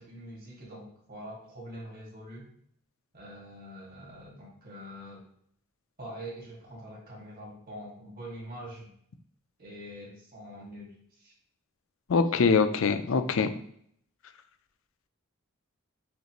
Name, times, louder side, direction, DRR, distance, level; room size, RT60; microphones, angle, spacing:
voice 1, 0.0-2.5 3.1-5.2 6.0-8.9 9.6-11.3, equal, 45° right, -4 dB, 1.8 m, -44 dB
voice 2, 12.1-13.6, left 5 dB, 65° left, 9 dB, 0.5 m, -24 dB
6.5 x 2.5 x 3.0 m, 0.66 s
head